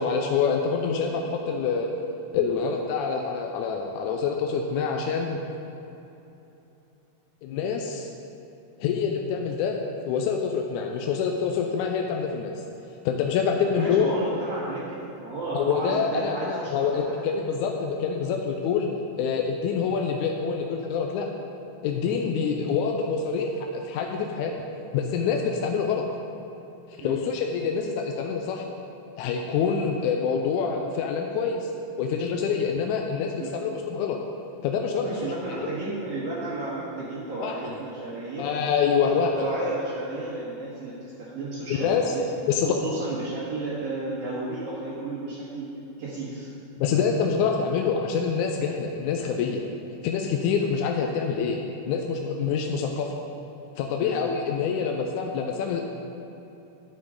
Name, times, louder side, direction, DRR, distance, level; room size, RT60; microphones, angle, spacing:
voice 1, 0.0-1.9 2.3-5.4 7.4-8.1 8.8-9.8 10.1-12.5 13.1-14.1 15.5-18.9 19.2-21.3 21.8-24.5 24.9-26.1 27.0-28.6 29.2-31.7 32.0-34.2 34.6-35.3 37.4-37.8 38.4-39.4 41.7-42.1 42.5-42.8 46.8-49.6 50.0-51.6 51.9-53.1 53.8-55.8, left 6 dB, 80° left, 2 dB, 1.9 m, -26 dB
voice 2, 13.8-17.0 27.0-27.2 33.4-33.5 35.0-38.5 39.0-42.3 42.6-45.7 46.0-46.5 54.0-54.2, right 2 dB, 55° right, -9 dB, 2.4 m, -33 dB
11.0 x 8.8 x 3.8 m, 2.9 s
omnidirectional pair, 3.8 m